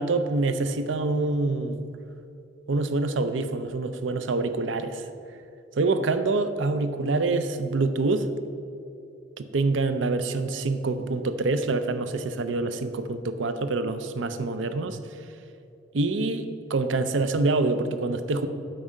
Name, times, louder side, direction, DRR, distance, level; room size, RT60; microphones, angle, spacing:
voice 1, 0.0-1.8 2.7-5.0 5.8-8.3 9.4-15.0 15.9-18.5, right 3 dB, 90° right, 10 dB, 0.6 m, -26 dB
8.8 x 5.4 x 7.5 m, 2.6 s
head